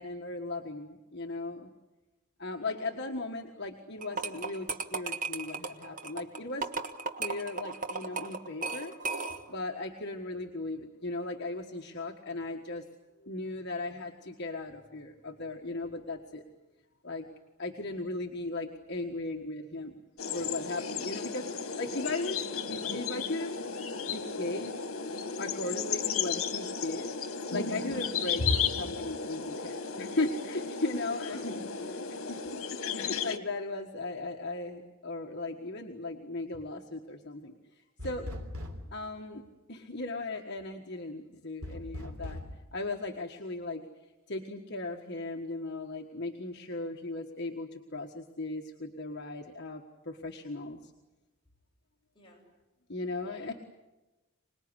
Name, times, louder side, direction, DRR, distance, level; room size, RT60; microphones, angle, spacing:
voice 1, 0.0-1.7 2.4-6.7 7.2-8.9 9.5-12.8 13.2-16.4 17.0-17.2 17.6-20.0 20.3-23.6 24.1-24.7 25.4-27.1 27.5-32.0 32.3-32.4 32.9-38.3 38.9-39.4 39.7-42.4 42.7-43.8 44.3-50.9 52.9-53.5, left 2 dB, 50° left, 1 dB, 1.5 m, -37 dB
sound 1, 4.0-9.6, right 4 dB, 40° right, 1.3 m, -36 dB
sound 2, 20.2-33.4, left 6 dB, 75° left, 1.7 m, -34 dB
sound 3, 38.0-39.0 41.6-42.5, left 1 dB, 90° right, 3.3 m, -40 dB
voice 2, 53.2-53.5, left 2 dB, 20° left, -2 dB, 7.7 m, -53 dB
26.0 x 20.0 x 9.8 m, 1.1 s
head